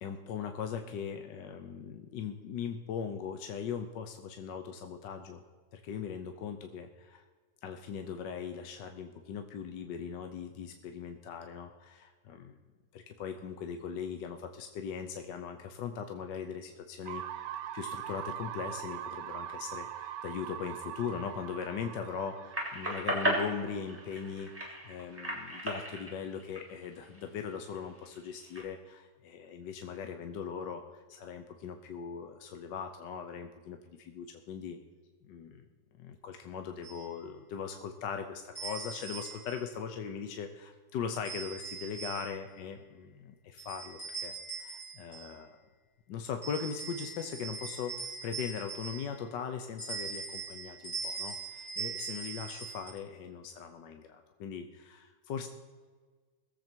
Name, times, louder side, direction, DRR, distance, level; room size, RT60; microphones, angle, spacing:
voice 1, 0.0-5.4 5.7-7.2 7.6-12.6 12.9-34.8 35.3-35.6 36.0-44.3 44.6-45.6 46.1-55.5, left 7 dB, 70° left, 6 dB, 1.4 m, -40 dB
sound 1, 17.1-24.9, right 10 dB, 70° right, 1.3 m, -42 dB
sound 2, 22.5-27.2 27.7-28.6, right 1 dB, 5° right, 3.4 m, -35 dB
sound 3, 36.8-37.0 38.6-39.6 41.2-42.5 43.6-45.4 46.4-49.3 49.8-52.9, right 5 dB, 30° left, 5.1 m, -41 dB
20.0 x 7.9 x 4.5 m, 1.5 s
omnidirectional pair, 2.0 m